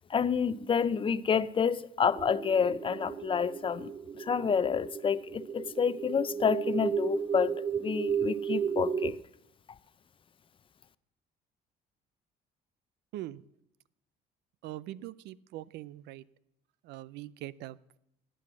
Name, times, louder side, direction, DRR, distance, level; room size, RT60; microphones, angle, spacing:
voice 1, 0.1-3.9 4.2-9.2, left 6 dB, 30° left, 0.6 m, -29 dB
sound 1, 2.2-9.1, right 7 dB, 20° right, 0.4 m, -34 dB
voice 2, 14.6-16.2 16.8-18.0, right 14 dB, 85° right, 0.5 m, -42 dB
17.5 x 7.9 x 7.5 m
cardioid pair, 110°, 17 cm